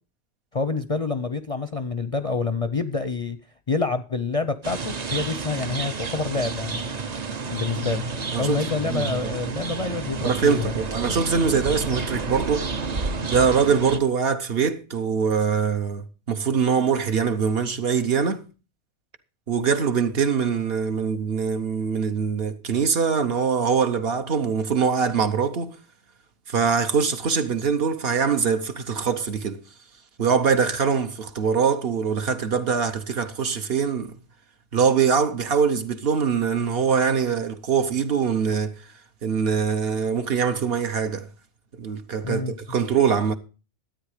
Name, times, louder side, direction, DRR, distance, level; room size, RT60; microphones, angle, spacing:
voice 1, 0.5-3.4 3.7-6.8 7.5-8.1 8.3-10.7 42.2-42.6, left 4 dB, 40° left, 0.5 m, -27 dB
sound 1, 4.6-14.0, right 4 dB, 40° right, 0.8 m, -30 dB
voice 2, 10.2-12.7 13.3-18.4 19.5-25.8 26.5-29.6 30.2-34.1 34.7-38.8 39.2-41.3 41.8-43.3, right 6 dB, 55° right, 1.1 m, -23 dB
13.0 x 8.9 x 4.9 m
omnidirectional pair, 1.2 m